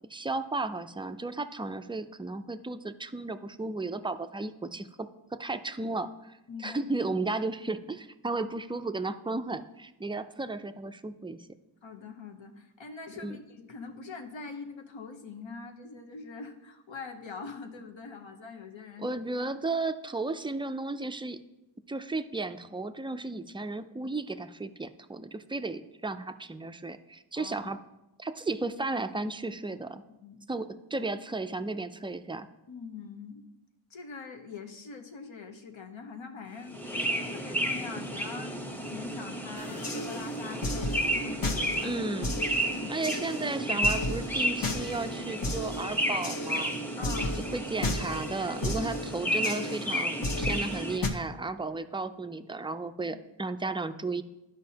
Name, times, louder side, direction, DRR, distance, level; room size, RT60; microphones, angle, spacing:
voice 1, 0.1-4.9 5.3-11.4 13.2-13.4 19.0-21.4 21.9-27.8 28.2-30.0 30.5-32.5 41.8-42.3 42.9-46.7 47.3-54.2, right 3 dB, 10° right, 10 dB, 0.3 m, -34 dB
voice 2, 6.5-6.9 8.3-8.5 11.8-19.5 27.3-27.7 30.1-30.4 32.7-33.4 33.9-38.5 38.8-41.9 42.7-43.0 47.0-47.4, left 4 dB, 70° left, 4 dB, 1.0 m, -43 dB
sound 1, 36.7-51.0, equal, 5° left, 0.9 m, -32 dB
sound 2, 39.6-51.1, left 1 dB, 45° left, 1.0 m, -35 dB
12.0 x 5.2 x 2.8 m, 0.96 s
wide cardioid pair, 55°, 48 cm